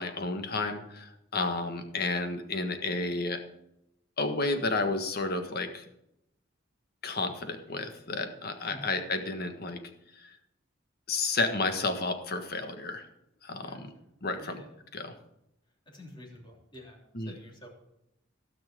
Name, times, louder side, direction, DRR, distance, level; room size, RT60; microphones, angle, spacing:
voice 1, 0.0-3.4 4.2-5.8 7.0-9.8 10.2-10.3 11.1-13.1 13.4-13.9 14.2-14.5 14.9-15.1 17.1-17.3, left 3 dB, 50° left, 7 dB, 1.6 m, -31 dB
voice 2, 13.6-14.0 14.3-14.7 15.8-17.7, equal, 25° left, -1 dB, 3.3 m, -49 dB
16.5 x 6.1 x 7.7 m, 0.83 s
head